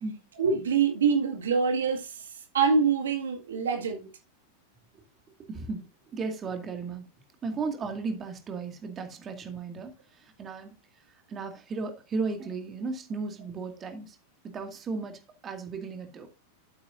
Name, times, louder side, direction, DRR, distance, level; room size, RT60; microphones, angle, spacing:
voice 1, 0.4-4.1, right 5 dB, 65° right, 2.0 m, -25 dB
voice 2, 5.5-5.9 6.1-7.0 7.4-9.9 10.4-10.7 11.3-14.2 14.5-16.3, right 4 dB, 25° right, 2.1 m, -35 dB
12.5 x 8.5 x 2.6 m
figure-of-eight pair, 90°, 0 cm